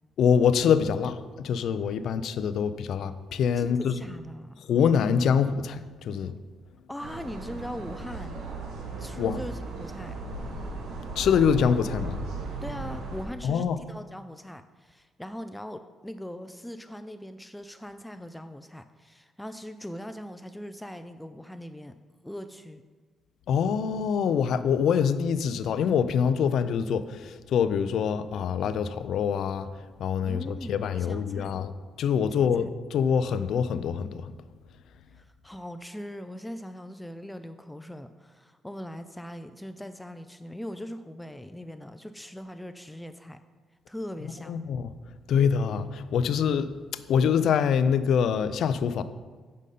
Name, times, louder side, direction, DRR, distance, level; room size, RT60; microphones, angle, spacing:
voice 1, 0.2-3.9 4.7-6.3 9.2-9.4 11.2-12.2 13.4-13.8 23.5-29.7 30.0-31.7 32.0-34.3 44.5-44.9 45.3-46.7 47.1-49.0, left 7 dB, 70° left, 0.5 m, -25 dB
voice 2, 3.6-4.8 6.9-8.4 9.0-10.2 12.6-21.9 22.2-22.8 30.2-31.5 32.4-32.5 35.2-43.4 43.9-44.6, equal, 5° left, 0.4 m, -40 dB
sound 1, 7.0-13.3, right 2 dB, 80° right, 1.2 m, -36 dB
8.4 x 5.3 x 5.4 m
cardioid pair, 90°, 0 cm